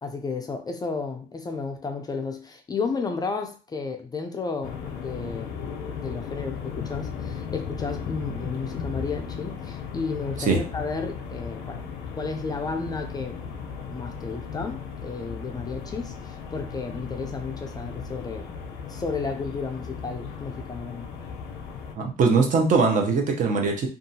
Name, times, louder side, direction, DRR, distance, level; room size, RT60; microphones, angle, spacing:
voice 1, 0.0-4.8 5.0-5.5 6.0-11.8 12.1-13.4 13.9-18.5 18.9-21.1, left 4 dB, 25° left, 0.4 m, -32 dB
sound 1, 4.6-22.0, left 6 dB, 85° left, 0.5 m, -36 dB
voice 2, 22.0-23.9, right 4 dB, 50° right, 0.7 m, -21 dB
2.7 x 2.3 x 2.6 m
cardioid pair, 110°, 17 cm